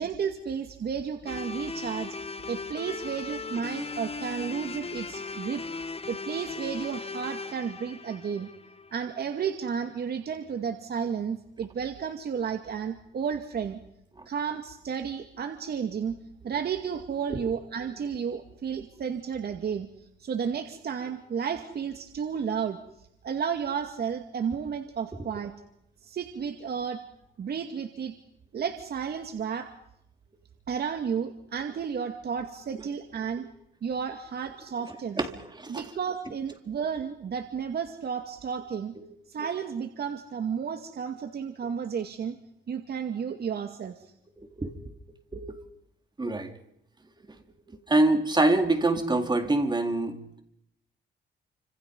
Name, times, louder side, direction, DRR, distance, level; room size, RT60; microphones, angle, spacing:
voice 1, 0.0-2.2 2.5-5.6 6.1-8.5 8.9-13.8 14.3-16.2 16.4-19.9 20.2-22.8 23.2-25.5 26.0-27.0 27.4-28.1 28.5-29.7 30.7-33.5 33.8-35.2 35.7-38.9 39.3-42.4 42.7-44.1, right 7 dB, 55° right, 6 dB, 2.4 m, -32 dB
sound 1, 1.3-9.4, left 4 dB, 30° left, 1.6 m, -38 dB
voice 2, 25.1-25.4 35.2-35.8 39.0-39.1 44.4-44.7 45.3-45.6 46.2-46.6 47.7-50.4, right 2 dB, 20° right, 6 dB, 4.0 m, -26 dB
29.0 x 27.0 x 5.5 m, 0.77 s
cardioid pair, 90°, 20 cm